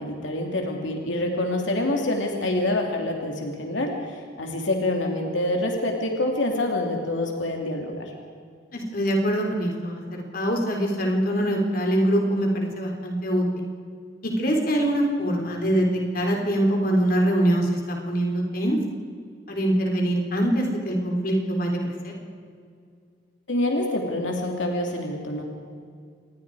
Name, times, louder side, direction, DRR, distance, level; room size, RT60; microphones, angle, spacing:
voice 1, 0.0-8.1 23.5-25.4, left 1 dB, 85° left, 2 dB, 2.8 m, -26 dB
voice 2, 8.7-13.6 14.2-18.8 19.5-22.1, right 1 dB, 50° left, 1 dB, 3.8 m, -24 dB
27.0 x 21.0 x 4.9 m, 2.2 s
head